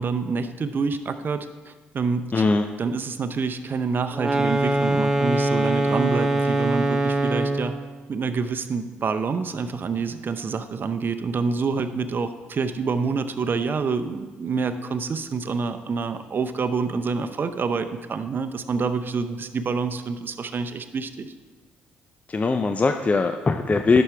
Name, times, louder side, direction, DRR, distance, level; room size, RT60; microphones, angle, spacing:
voice 1, 0.0-2.4 2.8-7.7 8.1-21.3, right 5 dB, 45° right, 10 dB, 0.7 m, -27 dB
voice 2, 2.3-2.6 22.3-24.0, left 3 dB, 30° left, 7 dB, 0.5 m, -20 dB
sound 1, 4.1-7.8, right 1 dB, 10° right, 1.4 m, -22 dB
11.5 x 6.1 x 3.3 m, 1.3 s
hypercardioid pair, 50°, 5 cm